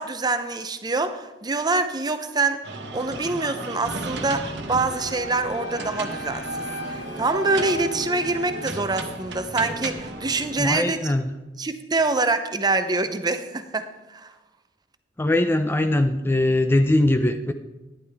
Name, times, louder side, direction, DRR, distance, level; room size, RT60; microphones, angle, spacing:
voice 1, 0.0-11.1 11.6-14.3, right 3 dB, 25° right, 9 dB, 0.7 m, -25 dB
sound 1, 2.6-10.7, right 2 dB, 75° right, 1.3 m, -34 dB
Wind instrument woodwind instrument, 5.0-9.3, equal, 90° left, 1.2 m, -36 dB
voice 2, 10.6-11.3 15.2-17.5, left 1 dB, 15° left, 8 dB, 0.4 m, -21 dB
11.5 x 10.5 x 3.5 m, 1.1 s
head